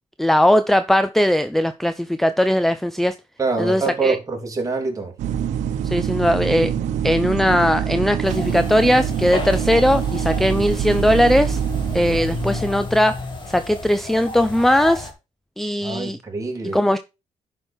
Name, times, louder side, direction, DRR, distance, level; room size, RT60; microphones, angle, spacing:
voice 1, 0.2-3.2 3.6-4.2 5.8-6.7 7.0-11.6 11.9-13.2 13.5-15.1 15.6-16.2 16.7-17.0, left 1 dB, ahead, 0.5 m, -19 dB
voice 2, 3.4-5.1 15.8-16.8, right 4 dB, 30° right, 3.1 m, -25 dB
sound 1, 5.2-12.9, right 8 dB, 90° right, 0.9 m, -25 dB
sound 2, 8.2-15.1, left 3 dB, 40° left, 2.6 m, -32 dB
11.0 x 5.1 x 4.4 m
cardioid pair, 100°, 12 cm